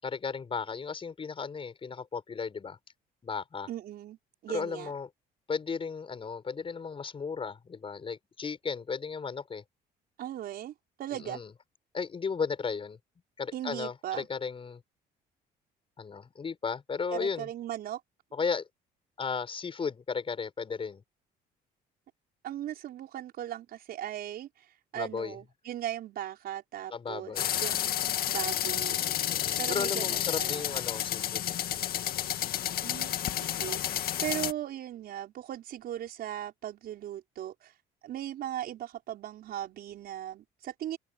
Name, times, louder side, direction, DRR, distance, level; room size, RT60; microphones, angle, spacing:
voice 1, 0.0-2.8 3.2-3.7 4.5-5.1 5.5-9.6 11.1-11.5 11.9-13.0 13.4-14.8 16.0-17.5 18.3-18.7 19.2-21.0 24.9-25.4 26.9-27.5 29.3-31.6, left 5 dB, 30° left, 6.6 m, -35 dB
voice 2, 3.7-4.2 4.4-4.9 10.2-10.7 11.0-11.4 13.5-14.3 17.1-18.0 22.4-24.7 24.9-29.2 29.6-30.7 32.8-33.1 33.4-37.7 38.0-41.0, right 12 dB, 65° right, 5.4 m, -38 dB
sound 1, 27.4-34.5, left 11 dB, 60° left, 2.1 m, -31 dB
open air
cardioid pair, 110°, 17 cm